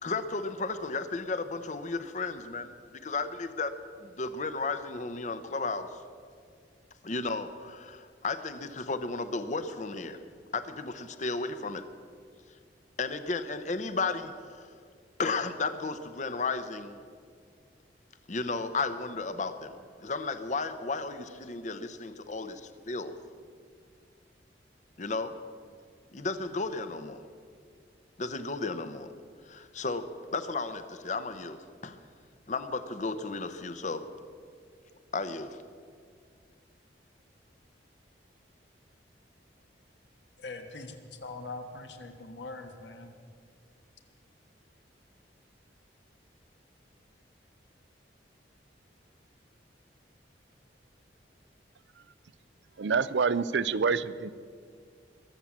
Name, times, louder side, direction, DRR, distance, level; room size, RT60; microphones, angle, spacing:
voice 1, 0.0-2.7 3.0-6.0 7.0-10.2 10.5-11.9 13.0-14.7 15.2-17.0 18.3-19.8 20.0-23.1 25.0-25.4 26.1-27.2 28.2-29.1 29.5-32.0 32.5-34.1 35.1-35.6, left 3 dB, 40° left, 11 dB, 0.8 m, -34 dB
voice 2, 40.4-43.1, left 3 dB, 80° left, 6 dB, 1.6 m, -42 dB
voice 3, 52.8-54.3, right 5 dB, 75° right, 17 dB, 0.5 m, -27 dB
22.0 x 7.6 x 7.2 m, 2.1 s
head